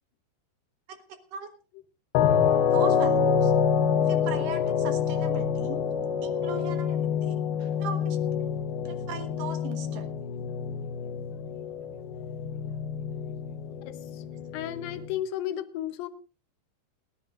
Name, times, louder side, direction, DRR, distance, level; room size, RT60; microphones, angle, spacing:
sound 1, 2.1-15.1, left 7 dB, 70° left, 2.7 m, -27 dB
voice 1, 2.7-3.5 4.1-5.8 6.2-7.3 7.6-8.2 8.9-10.1, right 6 dB, 60° right, 7 dB, 2.4 m, -38 dB
voice 2, 13.8-14.2 14.5-16.1, left 11 dB, 85° left, 10 dB, 2.0 m, -33 dB
29.0 x 11.5 x 2.5 m, 0.34 s
omnidirectional pair, 5.3 m